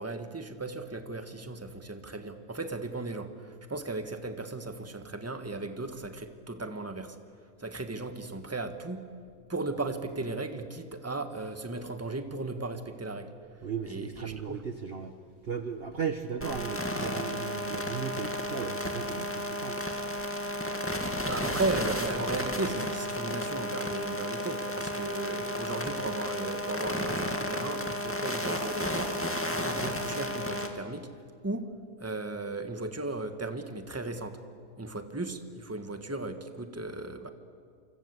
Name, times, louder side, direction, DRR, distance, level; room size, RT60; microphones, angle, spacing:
voice 1, 0.0-7.2 7.6-9.1 9.5-13.3 13.9-14.6 18.6-18.7 21.3-31.1 31.4-31.7 32.0-34.4 34.8-37.3, right 2 dB, 10° right, 8 dB, 1.4 m, -36 dB
voice 2, 13.6-15.1 15.4-19.8, right 6 dB, 45° right, 8 dB, 1.1 m, -36 dB
sound 1, 16.4-30.7, left 1 dB, 10° left, 2.1 m, -33 dB
28.0 x 25.0 x 8.2 m, 2.2 s
omnidirectional pair, 1.5 m